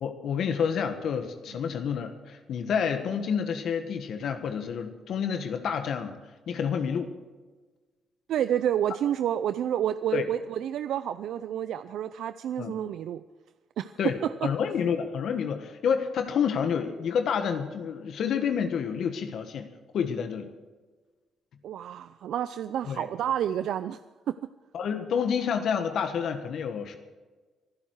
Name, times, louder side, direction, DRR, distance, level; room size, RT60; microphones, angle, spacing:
voice 1, 0.0-6.2 6.5-7.1 10.1-10.2 12.6-12.7 14.0-14.2 14.4-19.7 19.9-20.5 22.9-23.1 24.7-27.0, left 7 dB, 70° left, 7 dB, 1.5 m, -29 dB
voice 2, 8.3-13.2 13.8-13.9 14.2-14.3 21.6-24.0 24.3-24.4, right 10 dB, 75° right, 12 dB, 0.5 m, -29 dB
23.5 x 11.0 x 4.8 m, 1.3 s
cardioid pair, 90°, 0 cm